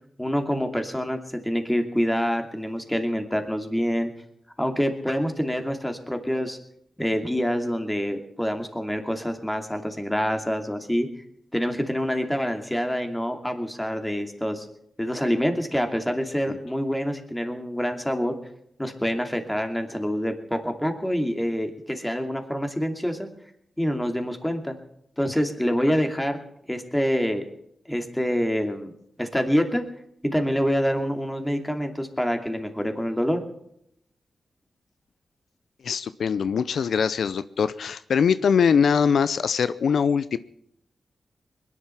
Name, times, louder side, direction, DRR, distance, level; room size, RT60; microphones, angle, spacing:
voice 1, 0.2-4.1 4.6-6.6 7.0-11.1 11.5-14.7 15.0-18.3 18.8-23.3 23.8-24.7 25.2-26.4 26.7-27.5 27.9-28.9 29.2-29.8 30.2-33.4, equal, 5° left, 5 dB, 2.6 m, -26 dB
voice 2, 35.8-40.4, left 6 dB, 85° left, 15 dB, 0.5 m, -22 dB
21.0 x 11.0 x 5.7 m, 0.72 s
cardioid pair, 70°, 0 cm